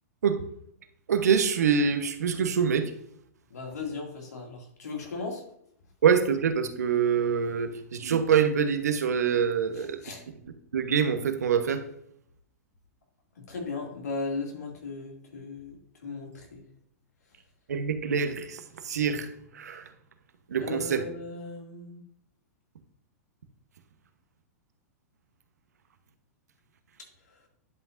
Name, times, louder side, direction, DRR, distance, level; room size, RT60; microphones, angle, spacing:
voice 1, 1.1-2.9 6.0-10.0 10.7-11.8 17.7-18.6 18.8-19.3 19.5-19.8 20.5-21.0, right 7 dB, 80° right, 9 dB, 0.9 m, -25 dB
voice 2, 3.5-5.4 9.7-10.2 13.4-16.6 20.6-22.0, left 3 dB, 80° left, 1 dB, 2.3 m, -37 dB
10.5 x 5.3 x 2.6 m, 0.71 s
hypercardioid pair, 115°, 9 cm